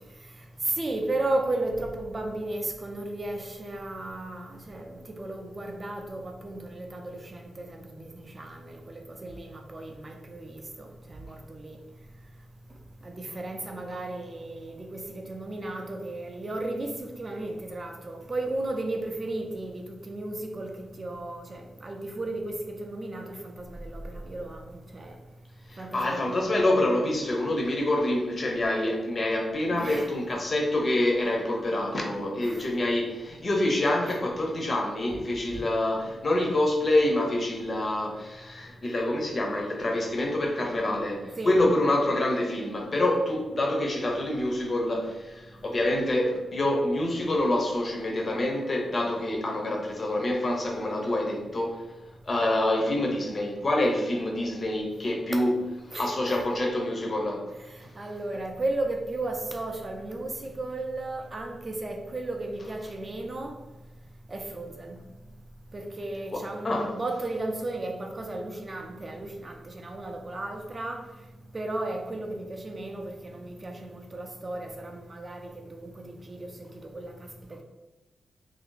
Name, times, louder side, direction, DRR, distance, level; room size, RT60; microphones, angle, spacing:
voice 1, 0.6-11.8 13.0-25.2 25.8-26.4 29.7-30.1 32.4-32.6 35.1-35.2 35.5-35.6 41.4-41.6 55.3-55.4 55.9-56.4 57.7-63.6 64.3-65.0 65.7-71.1 71.5-77.6, right 2 dB, 25° right, 0.5 m, -34 dB
voice 2, 25.7-51.9 52.2-55.5 56.0-57.5 57.8-57.9 66.3-66.9, left 1 dB, 30° left, 0.6 m, -26 dB
3.2 x 2.6 x 3.7 m
wide cardioid pair, 165°, 0 cm